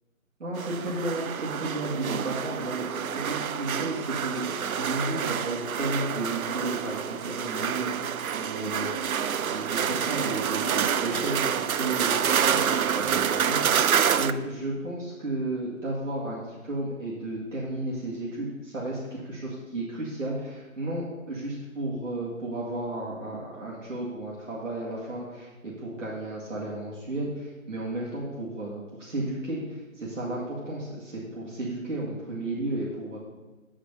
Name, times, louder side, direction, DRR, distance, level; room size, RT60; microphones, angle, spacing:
voice 1, 0.4-33.2, right 1 dB, 65° right, -7 dB, 2.0 m, -33 dB
sound 1, 0.5-14.3, right 8 dB, 80° right, 0.5 m, -28 dB
7.9 x 5.0 x 5.3 m, 1.2 s
figure-of-eight pair, 175°, 42 cm